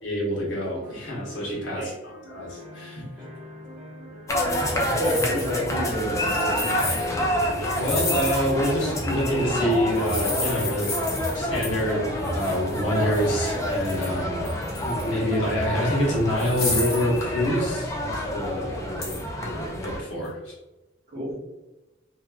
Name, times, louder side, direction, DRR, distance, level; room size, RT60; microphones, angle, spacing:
voice 1, 0.0-3.0 7.7-10.9 11.3-14.5 14.8-20.5, equal, 85° left, -4 dB, 0.9 m, -27 dB
sound 1, 0.8-16.8, left 2 dB, 5° right, 0.8 m, -42 dB
sound 2, 4.3-20.0, equal, 15° left, 0.3 m, -28 dB
sound 3, 5.0-5.5 6.3-7.1 7.6-8.6 9.9-11.4 11.6-11.8 12.2-14.2 14.4-15.2 15.6-15.7 16.4-17.2 19.0-19.2, left 2 dB, 55° left, 0.9 m, -32 dB
voice 2, 5.0-6.8 21.1-21.4, equal, 55° right, -5 dB, 1.0 m, -29 dB
2.8 x 2.3 x 2.2 m, 1.0 s
head